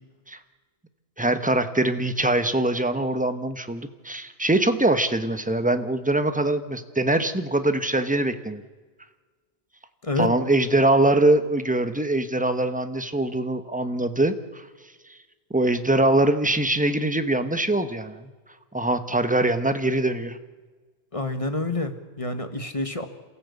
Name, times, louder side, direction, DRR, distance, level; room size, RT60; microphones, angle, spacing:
voice 1, 1.2-8.6 10.2-14.7 15.5-18.3 18.7-20.4, right 2 dB, 10° right, 9 dB, 1.1 m, -23 dB
voice 2, 21.1-23.1, left 2 dB, 35° left, 8 dB, 1.5 m, -28 dB
28.0 x 15.0 x 8.3 m, 1.4 s
omnidirectional pair, 1.0 m